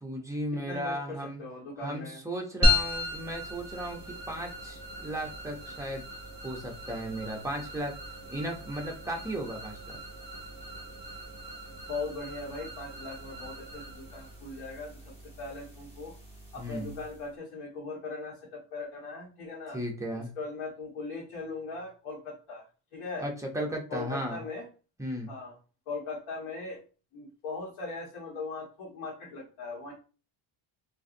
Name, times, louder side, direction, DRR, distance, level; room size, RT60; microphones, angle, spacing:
voice 1, 0.0-1.4 1.8-4.0 4.3-6.0 6.4-8.0 8.3-10.0 16.6-16.9 19.7-20.3 23.2-24.4 25.0-25.3, right 1 dB, 5° right, 0 dB, 0.4 m, -35 dB
voice 2, 0.5-2.2 11.9-16.1 16.5-19.8 20.4-22.6 22.9-23.3 23.9-24.7 25.3-25.5 25.9-26.8 27.1-29.9, left 3 dB, 85° left, -4 dB, 1.3 m, -39 dB
sound 1, 2.6-17.3, left 1 dB, 15° left, 0.9 m, -35 dB
3.8 x 2.5 x 2.5 m, 0.35 s
cardioid pair, 145°, 49 cm